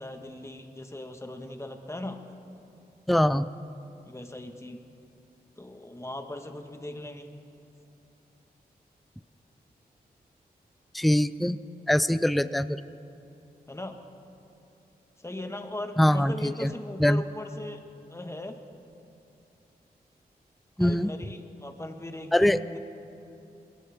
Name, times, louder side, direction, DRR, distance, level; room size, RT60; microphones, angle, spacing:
voice 1, 0.0-2.2 4.0-4.8 5.6-7.2 13.7-13.9 15.2-17.8 18.1-18.6 20.8-22.8, left 1 dB, 15° left, 5 dB, 1.6 m, -38 dB
voice 2, 3.1-3.5 10.9-11.6 11.9-12.8 16.0-16.7 17.0-17.2 20.8-21.1 22.3-22.6, left 1 dB, ahead, 14 dB, 0.5 m, -23 dB
21.5 x 18.5 x 3.6 m, 2.7 s
cardioid pair, 50°, 17 cm